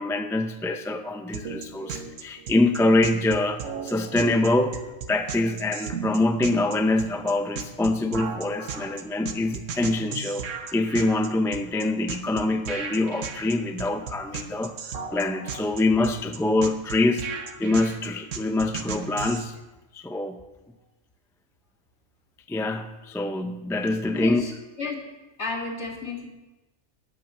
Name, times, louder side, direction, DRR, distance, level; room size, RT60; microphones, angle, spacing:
voice 1, 0.0-4.8 5.1-14.7 15.1-17.3 17.6-19.6 19.9-20.4 22.5-24.4, left 2 dB, 5° left, 7 dB, 0.3 m, -25 dB
sound 1, 1.3-19.5, right 6 dB, 65° right, 1.3 m, -35 dB
voice 2, 24.1-24.5 24.8-25.0 25.4-26.3, left 3 dB, 55° left, 0 dB, 2.5 m, -32 dB
13.0 x 9.2 x 6.3 m, 1.1 s
omnidirectional pair, 1.4 m